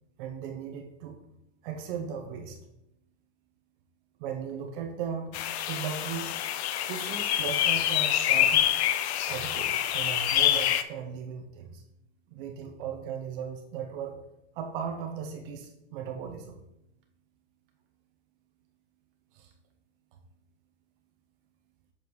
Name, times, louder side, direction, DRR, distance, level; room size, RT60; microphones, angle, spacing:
voice 1, 0.2-1.2 1.6-2.6 4.2-5.4 5.7-6.3 6.9-8.7 9.3-11.8 12.3-14.2 14.5-16.6 19.3-19.5, right 7 dB, 50° right, 4 dB, 1.0 m, -37 dB
sound 1, 5.3-10.8, left 11 dB, 65° left, 0.6 m, -26 dB
7.2 x 6.7 x 3.2 m, 0.84 s
supercardioid pair, 140°, 35 cm